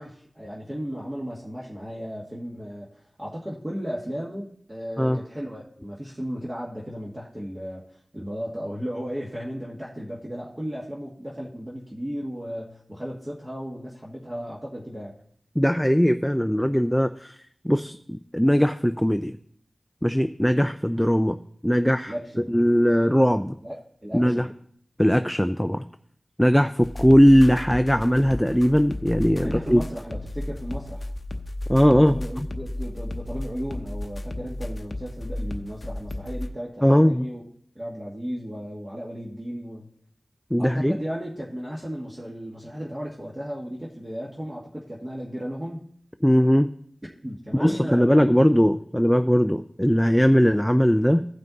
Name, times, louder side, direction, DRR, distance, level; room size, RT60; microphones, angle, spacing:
voice 1, 0.0-2.9 3.2-15.1 22.1-22.5 23.6-24.5 29.4-31.1 31.9-37.5 37.7-39.9 40.6-45.9 47.0-48.1, equal, 20° right, -5 dB, 1.6 m, -35 dB
voice 2, 15.6-17.4 17.6-19.3 20.0-21.4 21.6-22.1 22.5-23.5 24.1-24.5 25.0-25.8 26.4-29.8 31.7-32.1 36.8-37.3 40.5-40.9 46.2-46.7 47.6-51.3, equal, 5° left, 8 dB, 0.4 m, -19 dB
sound 1, 26.8-36.5, left 1 dB, 50° left, 0.8 m, -34 dB
16.0 x 5.6 x 3.9 m, 0.63 s
wide cardioid pair, 80°, 0 cm